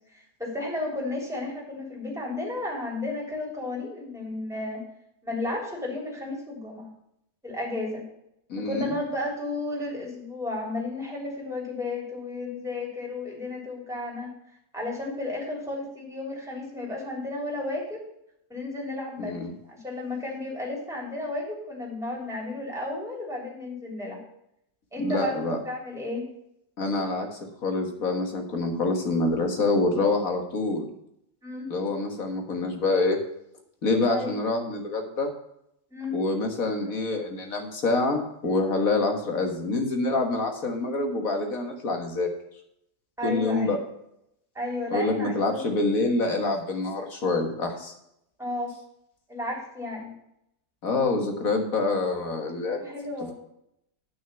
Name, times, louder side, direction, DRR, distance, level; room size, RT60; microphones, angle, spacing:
voice 1, 0.1-4.8 5.2-6.9 7.4-8.0 8.6-14.3 14.7-18.0 18.5-19.4 19.7-24.2 24.9-26.3 31.4-31.7 34.1-34.4 35.9-36.2 43.2-43.8 44.6-45.6 48.4-48.7 49.3-50.1 52.8-53.3, left 2 dB, ahead, -3 dB, 3.4 m, -33 dB
voice 2, 8.5-8.9 19.2-19.5 25.0-25.6 26.8-30.9 31.7-33.2 33.8-35.3 36.1-42.3 43.2-43.8 44.9-47.9 50.8-52.9, left 3 dB, 55° left, 4 dB, 1.9 m, -26 dB
9.8 x 6.4 x 6.9 m, 0.77 s
omnidirectional pair, 1.7 m